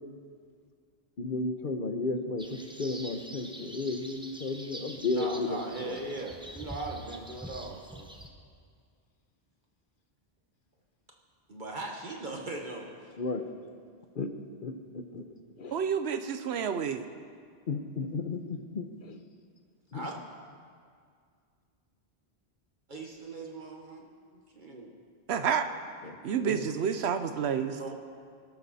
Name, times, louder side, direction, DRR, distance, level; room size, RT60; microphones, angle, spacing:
voice 1, 1.2-6.0 13.2-13.4 14.1-14.3 14.6-15.3 15.6-15.8 17.7-19.2 19.9-20.1 26.0-26.7, left 3 dB, 55° left, 7 dB, 1.1 m, -34 dB
sound 1, 2.4-8.3, right 1 dB, 5° right, 0.9 m, -45 dB
voice 2, 5.1-8.1 11.5-12.9 19.9-20.1 22.9-24.1 24.3-24.9 27.8-27.9, right 2 dB, 50° right, 0 dB, 1.5 m, -39 dB
voice 3, 15.7-17.1 25.3-25.7 26.2-27.8, right 7 dB, 85° right, 9 dB, 1.0 m, -29 dB
21.0 x 12.0 x 4.2 m, 2.1 s
omnidirectional pair, 1.1 m